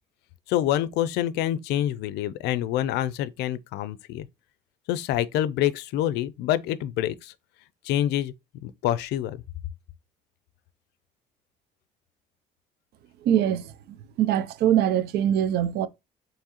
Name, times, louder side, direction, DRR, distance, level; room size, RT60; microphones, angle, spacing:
voice 1, 0.5-4.3 4.9-7.3 7.8-8.3 8.6-9.4, left 12 dB, 85° left, 0.4 m, -26 dB
voice 2, 13.2-15.9, right 10 dB, 75° right, 0.5 m, -23 dB
4.6 x 3.1 x 2.9 m
cardioid pair, 110°, 17 cm